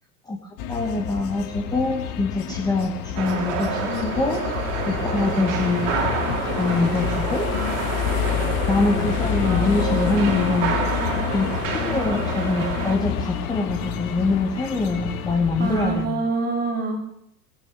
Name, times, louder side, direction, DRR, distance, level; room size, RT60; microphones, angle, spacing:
sound 1, 0.6-16.1, left 9 dB, 40° left, 1.6 m, -28 dB
voice 1, 0.7-4.5 4.8-5.9 6.2-7.5 8.7-10.8 11.3-16.2, left 2 dB, 10° left, 2 dB, 1.2 m, -24 dB
sound 2, 3.2-13.0, right 7 dB, 50° right, 2.8 m, -29 dB
voice 2, 7.8-8.8 10.9-11.2 15.6-17.0, right 4 dB, 20° right, 2 dB, 2.7 m, -28 dB
18.0 x 16.0 x 3.6 m, 0.73 s
figure-of-eight pair, 95°, 49 cm